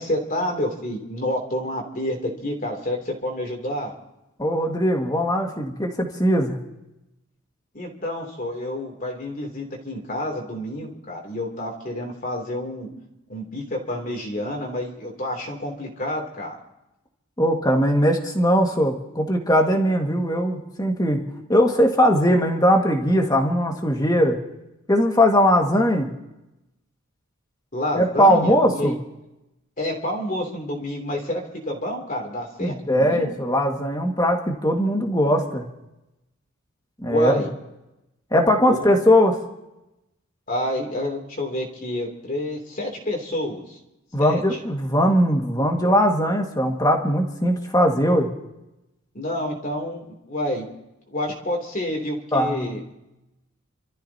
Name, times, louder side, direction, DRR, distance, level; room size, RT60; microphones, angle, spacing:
voice 1, 0.0-3.9 7.7-12.9 13.3-16.5 27.7-28.9 29.8-33.3 37.1-37.5 38.7-38.8 40.5-43.8 44.2-44.6 49.1-50.6 51.1-52.8, left 1 dB, 40° left, 1 dB, 3.1 m, -29 dB
voice 2, 4.4-6.6 17.4-21.2 21.5-24.4 24.9-26.1 28.0-29.0 32.6-35.6 37.0-37.5 38.3-39.4 44.1-48.3 52.3-52.8, equal, 20° left, 2 dB, 1.9 m, -20 dB
29.0 x 14.0 x 2.9 m, 0.93 s
head